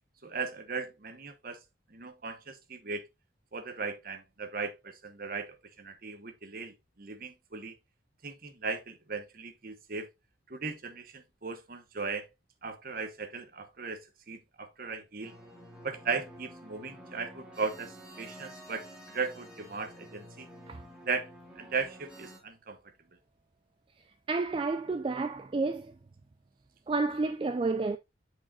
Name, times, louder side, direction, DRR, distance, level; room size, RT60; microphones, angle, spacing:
voice 1, 0.2-1.6 1.9-3.1 3.5-7.8 8.2-10.1 10.5-12.3 12.6-15.3 15.8-20.5 21.0-22.8, right 4 dB, 50° right, 1.0 m, -37 dB
sound 1, 15.2-22.4, equal, 5° right, 1.9 m, -50 dB
voice 2, 24.3-25.9 26.9-28.0, right 3 dB, 25° right, 0.3 m, -30 dB
8.7 x 4.9 x 2.3 m
head